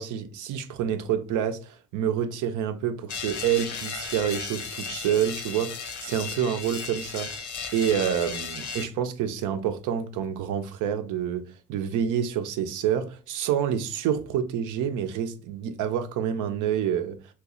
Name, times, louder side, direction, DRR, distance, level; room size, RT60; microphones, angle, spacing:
voice 1, 0.0-7.3 7.7-11.4 11.7-17.2, right 9 dB, 85° right, 0.5 m, -28 dB
sound 1, 3.1-8.9, left 5 dB, 80° left, 0.8 m, -35 dB
3.0 x 2.3 x 3.7 m
cardioid pair, 90°, 30 cm